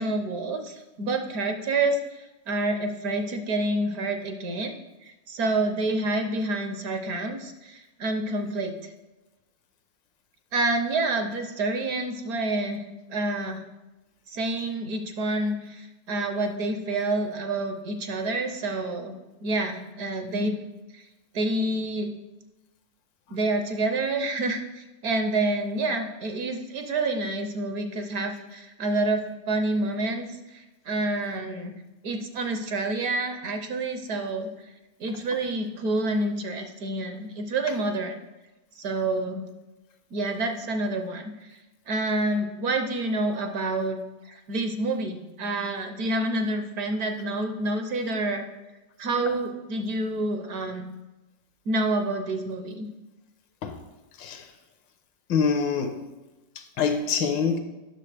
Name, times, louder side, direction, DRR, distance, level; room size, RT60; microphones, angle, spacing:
voice 1, 0.0-4.7 5.0-8.7 10.5-12.8 13.1-13.6 14.3-19.1 19.4-20.6 20.9-21.0 21.3-22.1 23.3-31.7 32.0-34.5 35.0-38.2 38.8-39.4 40.1-41.6 41.9-44.0 44.2-48.4 49.0-50.9 51.7-52.9, right 2 dB, 65° right, 6 dB, 1.1 m, -28 dB
voice 2, 55.3-56.0 56.6-57.6, left 6 dB, 85° left, 7 dB, 1.5 m, -25 dB
9.7 x 6.4 x 3.3 m, 1.1 s
omnidirectional pair, 1.9 m